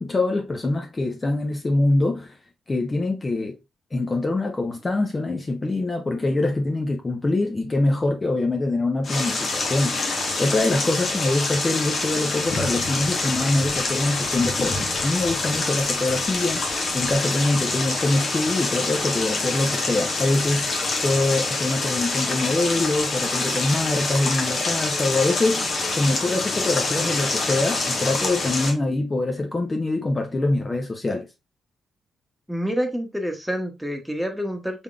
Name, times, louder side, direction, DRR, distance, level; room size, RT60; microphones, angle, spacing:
voice 1, 0.0-2.4 2.7-3.6 3.9-20.7 21.0-31.3, left 2 dB, 30° left, 0.6 m, -24 dB
sound 1, 9.0-28.7, left 3 dB, 50° left, 1.2 m, -26 dB
voice 2, 32.5-34.8, equal, 5° right, 1.0 m, -27 dB
3.6 x 3.6 x 2.3 m
cardioid pair, 80°, 0 cm